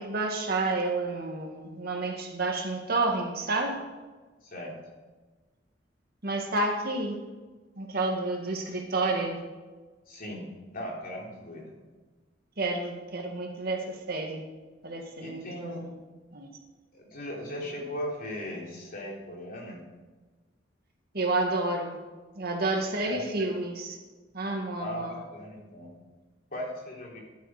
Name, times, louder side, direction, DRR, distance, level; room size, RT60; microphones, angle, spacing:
voice 1, 0.0-3.8 6.2-7.2 7.8-9.4 12.6-14.4 14.8-15.9 16.3-16.5 21.1-22.0 22.4-24.0 24.3-25.1, right 2 dB, 55° right, 2 dB, 2.0 m, -30 dB
voice 2, 4.4-4.8 10.1-10.5 10.7-11.7 15.2-15.8 16.9-19.8 23.1-23.2 24.8-25.9 26.5-27.2, left 1 dB, 50° left, -2 dB, 3.7 m, -38 dB
14.0 x 11.5 x 5.0 m, 1.3 s
head